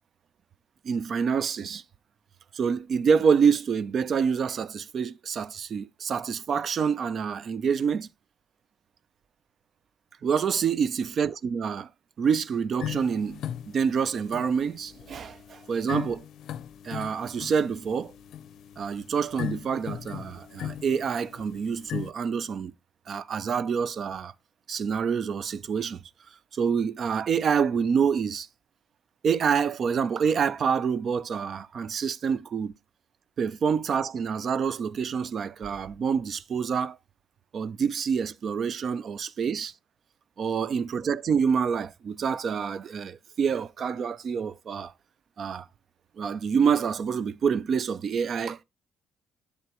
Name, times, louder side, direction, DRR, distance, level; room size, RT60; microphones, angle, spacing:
voice 1, 0.8-1.8 2.5-8.1 10.2-11.9 12.2-16.2 16.8-18.1 18.8-22.7 23.1-24.3 24.7-26.0 26.5-28.5 29.2-32.7 33.4-37.0 37.5-39.7 40.4-44.9 45.4-45.7 46.2-48.6, right 6 dB, 55° right, 0.5 m, -27 dB
sound 1, 12.8-22.1, left 10 dB, 75° left, 0.5 m, -39 dB
8.2 x 8.0 x 3.0 m
cardioid pair, 90°, 0 cm